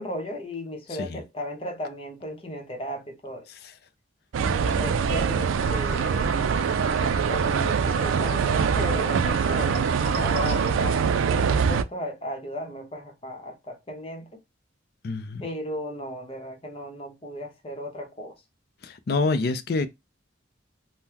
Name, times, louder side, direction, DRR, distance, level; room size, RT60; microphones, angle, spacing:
voice 1, 0.0-3.5 4.5-6.5 6.9-14.3 15.4-18.3, left 1 dB, 30° left, 0.8 m, -36 dB
sound 1, 4.3-11.8, right 6 dB, 85° right, 0.3 m, -24 dB
sound 2, 5.6-10.7, right 4 dB, 55° right, 1.0 m, -34 dB
voice 2, 15.0-15.4 18.8-19.9, left 3 dB, 50° left, 0.4 m, -26 dB
3.7 x 2.1 x 2.8 m
head